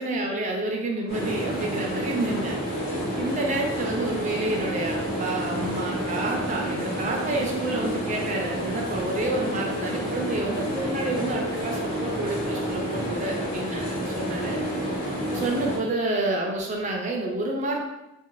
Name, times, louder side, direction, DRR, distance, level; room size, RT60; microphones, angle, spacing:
voice 1, 0.0-2.6 3.2-14.6 15.3-17.8, right 2 dB, 30° right, 1 dB, 0.4 m, -29 dB
sound 1, 1.1-15.8, equal, 45° left, 0.8 m, -29 dB
2.5 x 2.1 x 3.0 m, 0.97 s
head